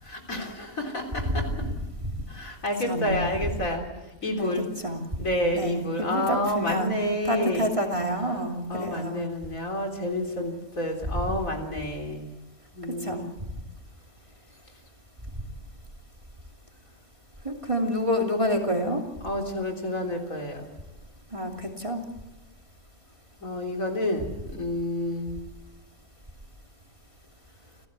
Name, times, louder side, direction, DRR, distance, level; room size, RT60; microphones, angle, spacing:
voice 1, 0.0-1.7 2.3-3.9 4.2-4.7 5.2-7.7 8.7-12.3 12.7-13.3 18.2-18.3 19.2-20.7 23.4-25.4, left 1 dB, 60° left, 2 dB, 4.1 m, -29 dB
voice 2, 2.9-3.3 4.4-5.0 5.5-6.9 7.2-9.3 13.0-13.2 17.4-19.0 21.3-22.0, equal, 20° right, 1 dB, 2.7 m, -28 dB
28.5 x 16.5 x 8.3 m, 1.1 s
omnidirectional pair, 1.6 m